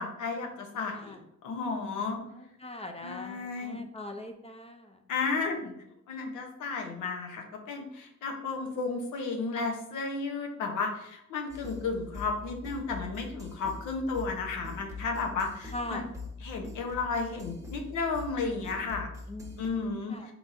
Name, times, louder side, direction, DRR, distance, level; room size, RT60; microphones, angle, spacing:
voice 1, 0.0-2.2 3.0-3.8 5.1-5.7 6.1-16.1 16.4-19.1 19.6-20.3, left 4 dB, 85° left, 3 dB, 0.9 m, -33 dB
voice 2, 2.0-5.0 15.7-16.1 19.3-20.3, left 1 dB, 20° left, 4 dB, 0.5 m, -42 dB
sound 1, 11.5-19.7, left 3 dB, 10° right, 1.0 m, -43 dB
4.5 x 3.9 x 2.6 m, 0.77 s
cardioid pair, 90°, 30 cm